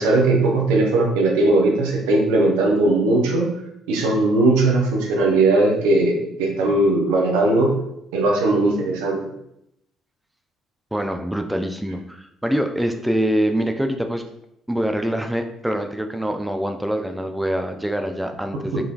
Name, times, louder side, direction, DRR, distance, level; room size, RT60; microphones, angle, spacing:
voice 1, 0.0-3.5 3.9-7.7 8.1-9.2, right 2 dB, 70° right, 0 dB, 0.7 m, -18 dB
voice 2, 10.9-14.2 14.7-18.9, equal, 5° right, 5 dB, 0.4 m, -24 dB
3.7 x 3.2 x 2.4 m, 0.79 s
figure-of-eight pair, 50°, 0 cm